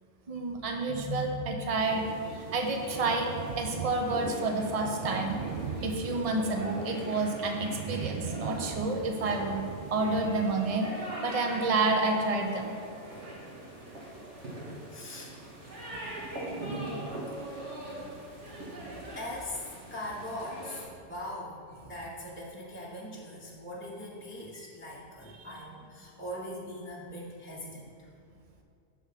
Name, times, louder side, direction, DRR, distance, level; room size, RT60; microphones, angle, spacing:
voice 1, 0.3-2.0 2.5-3.3 3.6-5.4 5.8-9.6 9.9-10.9 11.2-12.7 16.4-17.1 18.6-18.7, right 3 dB, 35° right, 3 dB, 0.8 m, -29 dB
sound 1, 1.8-20.8, right 1 dB, 80° right, 2.2 m, -43 dB
sound 2, 1.9-10.4, right 6 dB, 55° right, 0.5 m, -40 dB
voice 2, 14.9-15.3 17.3-17.7 19.1-19.6 19.9-28.1, left 1 dB, 10° left, -5 dB, 0.9 m, -41 dB
6.9 x 6.2 x 5.9 m, 2.4 s
omnidirectional pair, 1.2 m